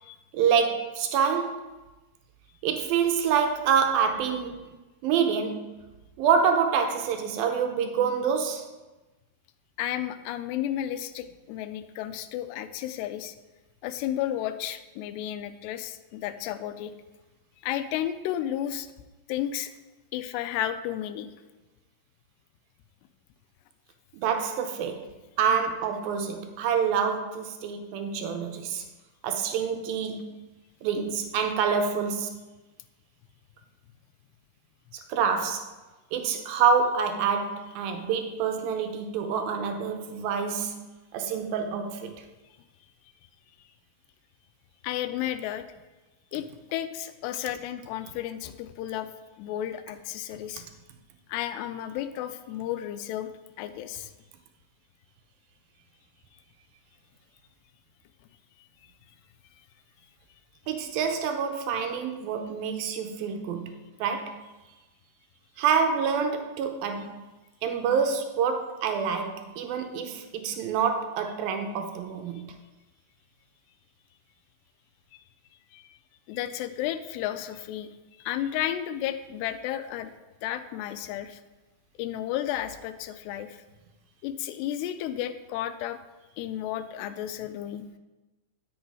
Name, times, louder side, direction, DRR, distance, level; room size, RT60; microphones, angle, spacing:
voice 1, 0.3-1.6 2.6-4.6 5.0-5.7 6.2-8.7 24.2-25.1 25.4-28.8 29.2-30.3 30.8-32.4 35.1-35.7 36.1-40.8 41.1-42.2 60.7-63.7 64.0-64.4 65.6-67.2 67.6-72.5, right 6 dB, 75° right, 2.2 m, -27 dB
voice 2, 9.8-13.4 13.8-16.9 17.6-18.9 19.3-19.7 20.1-21.3 44.8-45.7 46.3-46.5 46.7-49.1 49.4-50.6 51.3-53.3 53.6-54.1 75.1-75.2 75.7-76.0 76.3-77.9 78.2-80.1 80.4-81.4 82.0-83.6 84.2-86.0 86.4-87.9, left 11 dB, 85° left, 2.7 m, -32 dB
10.5 x 8.1 x 4.7 m
omnidirectional pair, 4.8 m